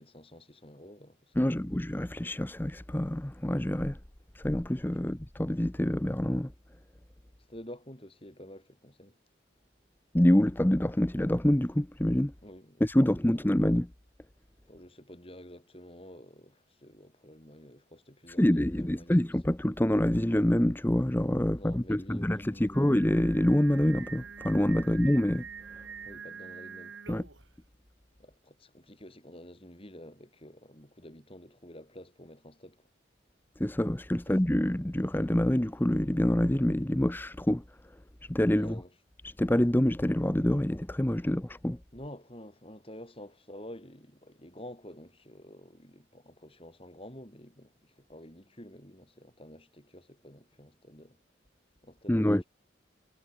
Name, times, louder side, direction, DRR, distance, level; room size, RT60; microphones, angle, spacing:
voice 1, 0.0-1.7 5.0-5.1 7.5-9.2 12.4-13.4 14.7-19.2 21.4-22.9 24.8-25.0 26.0-27.0 28.2-32.9 34.3-34.4 38.5-39.0 41.9-51.2 51.8-52.4, left 1 dB, 30° left, 7.5 m, -49 dB
voice 2, 1.4-4.0 4.3-6.5 10.1-12.3 12.8-13.9 18.3-25.5 27.1-27.2 33.6-37.6 38.3-38.7 39.2-41.8 52.1-52.4, left 1 dB, 10° left, 0.7 m, -26 dB
Singing, 22.7-27.5, right 6 dB, 80° right, 1.9 m, -45 dB
head